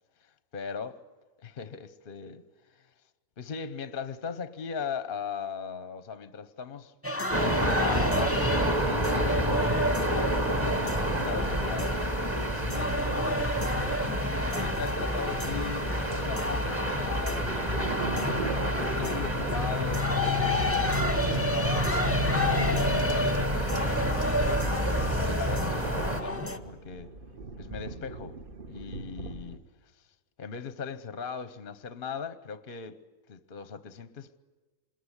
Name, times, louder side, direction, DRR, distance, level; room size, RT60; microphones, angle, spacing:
voice 1, 0.2-1.0 1.4-2.4 2.7-2.9 3.4-9.7 10.1-12.0 12.6-14.0 14.5-18.4 18.8-22.3 22.6-24.7 25.2-27.1 27.6-28.4 28.7-29.6 29.9-30.0 30.4-33.0 33.3-34.4, left 6 dB, 40° left, 1.0 m, -39 dB
sound 1, 7.0-26.6, left 1 dB, 10° left, 1.1 m, -32 dB
sound 2, 7.3-26.2, equal, 15° right, 1.6 m, -29 dB
sound 3, 17.4-29.6, right 3 dB, 35° right, 1.3 m, -39 dB
26.0 x 21.5 x 9.9 m
omnidirectional pair, 1.7 m